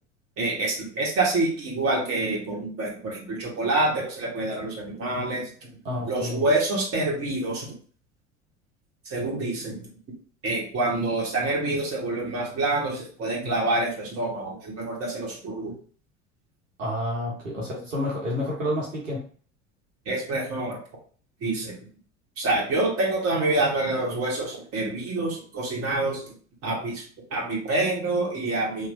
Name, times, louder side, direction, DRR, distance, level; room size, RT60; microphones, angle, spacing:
voice 1, 0.4-5.5 6.1-7.7 9.1-9.9 10.4-15.7 20.0-20.8 21.4-21.9 22.4-26.2 26.6-27.0 27.3-28.9, right 2 dB, 40° right, -2 dB, 1.4 m, -27 dB
voice 2, 5.8-6.4 16.8-19.2, left 1 dB, 80° right, -4 dB, 1.0 m, -29 dB
2.9 x 2.2 x 2.7 m, 0.43 s
figure-of-eight pair, 70°, 38 cm